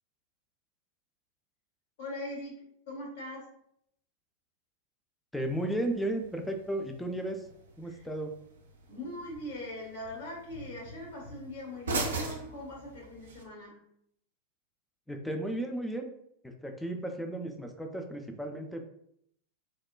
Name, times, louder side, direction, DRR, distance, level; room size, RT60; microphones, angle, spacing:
voice 1, 2.0-3.5 7.8-8.1 8.9-13.8, left 1 dB, 55° left, -3 dB, 1.2 m, -41 dB
voice 2, 5.3-7.4 7.8-8.3 15.1-16.1 16.4-18.8, right 1 dB, 5° left, 3 dB, 0.3 m, -34 dB
sound 1, 5.4-13.4, right 3 dB, 65° right, 0.4 m, -41 dB
3.2 x 2.1 x 2.2 m, 0.72 s
figure-of-eight pair, 90°, 0 cm